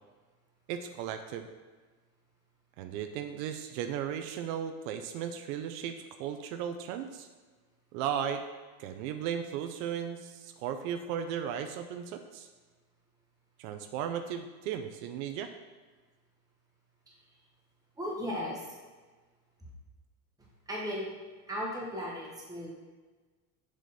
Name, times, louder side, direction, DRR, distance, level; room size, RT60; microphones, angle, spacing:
voice 1, 0.7-1.5 2.8-7.3 7.9-8.4 8.8-12.5 13.6-15.5, right 8 dB, 75° right, 7 dB, 0.6 m, -36 dB
voice 2, 17.9-18.7 20.7-21.1 21.5-22.7, equal, 10° right, -4 dB, 1.3 m, -36 dB
6.5 x 5.0 x 4.1 m, 1.3 s
cardioid pair, 165°, 41 cm